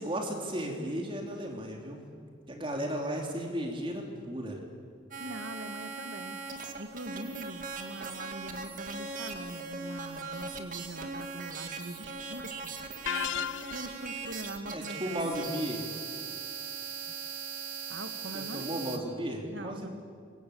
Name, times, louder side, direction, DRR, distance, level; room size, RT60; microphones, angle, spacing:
voice 1, 0.0-2.0 2.5-4.6 14.7-15.9 18.3-19.9, equal, 25° right, 1 dB, 3.4 m, -35 dB
sound 1, 5.1-19.0, right 5 dB, 40° right, 2.3 m, -40 dB
voice 2, 5.2-6.4 6.8-12.7 13.7-15.3 17.1-17.2 17.9-18.7 19.5-19.9, right 1 dB, 65° right, 9 dB, 1.8 m, -42 dB
sound 2, 13.1-14.1, left 8 dB, 75° left, 0.8 m, -33 dB
26.0 x 23.0 x 8.6 m, 2.2 s
head